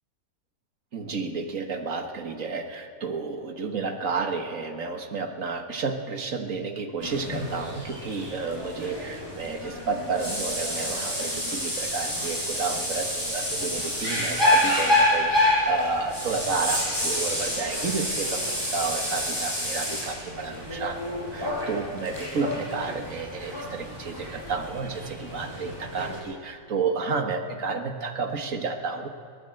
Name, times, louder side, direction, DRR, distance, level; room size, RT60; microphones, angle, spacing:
voice 1, 0.9-29.1, right 4 dB, 60° right, 5 dB, 2.0 m, -31 dB
sound 1, 7.0-26.2, left 1 dB, 15° right, 7.7 m, -28 dB
23.0 x 16.5 x 7.9 m, 2.2 s
omnidirectional pair, 1.6 m